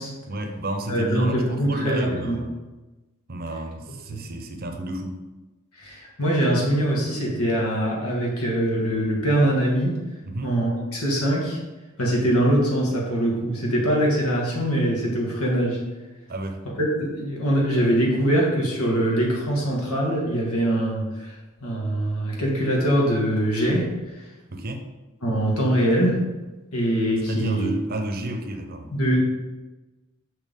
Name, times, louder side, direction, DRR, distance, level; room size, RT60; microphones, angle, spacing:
voice 1, 0.3-2.5 3.3-5.2 10.2-10.5 16.3-16.7 24.5-24.8 27.3-28.9, right 1 dB, 45° right, 4 dB, 0.7 m, -31 dB
voice 2, 0.9-2.4 4.1-4.2 5.8-10.0 10.4-11.6 12.0-15.8 16.8-23.9 24.2-24.3 25.2-26.2 26.7-27.7 28.9-29.2, right 1 dB, 80° left, -3 dB, 1.8 m, -23 dB
6.4 x 5.8 x 3.7 m, 1.1 s
head